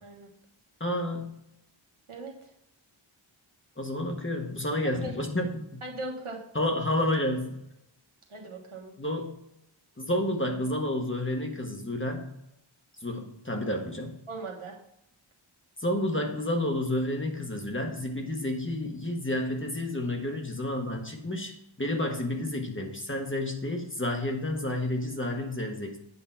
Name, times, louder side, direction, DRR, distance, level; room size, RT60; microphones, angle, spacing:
voice 1, 0.8-1.3 3.8-5.8 6.5-7.6 9.0-9.4 10.0-12.3 13.0-14.2 15.8-26.0, left 1 dB, 25° left, 2 dB, 1.4 m, -30 dB
voice 2, 2.1-2.5 5.0-5.1 5.8-6.4 8.3-8.9 14.3-14.8, right 2 dB, 85° right, 0 dB, 1.5 m, -39 dB
8.3 x 4.0 x 5.6 m, 0.81 s
wide cardioid pair, 45°, 49 cm